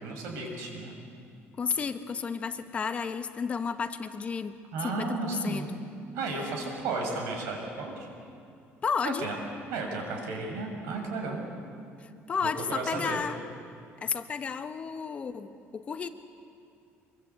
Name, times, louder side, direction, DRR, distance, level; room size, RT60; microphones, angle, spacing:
voice 1, 0.0-0.9 4.7-5.7 6.1-8.1 9.0-9.4 9.7-11.4 12.7-13.2, right 3 dB, 85° right, 2 dB, 6.2 m, -33 dB
voice 2, 1.6-4.5 4.8-5.7 8.8-9.3 12.0-13.4 14.0-16.1, left 6 dB, 25° left, 9 dB, 1.0 m, -32 dB
25.0 x 23.0 x 8.2 m, 2.4 s
cardioid pair, 165°, 5 cm